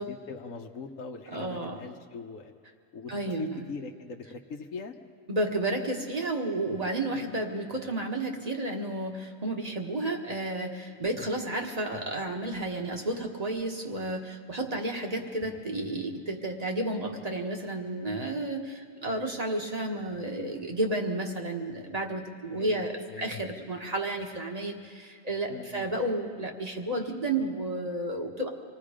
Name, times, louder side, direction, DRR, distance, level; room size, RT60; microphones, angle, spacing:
voice 1, 0.0-2.5 2.9-3.1 3.4-4.9 7.1-7.3 11.0-11.4 19.0-19.2 22.5-23.3 25.5-25.9, left 4 dB, 90° left, 3 dB, 1.3 m, -42 dB
voice 2, 1.3-1.8 3.1-3.6 5.3-28.5, right 2 dB, 30° right, 2 dB, 1.6 m, -32 dB
26.0 x 19.5 x 5.1 m, 2.3 s
omnidirectional pair, 1.3 m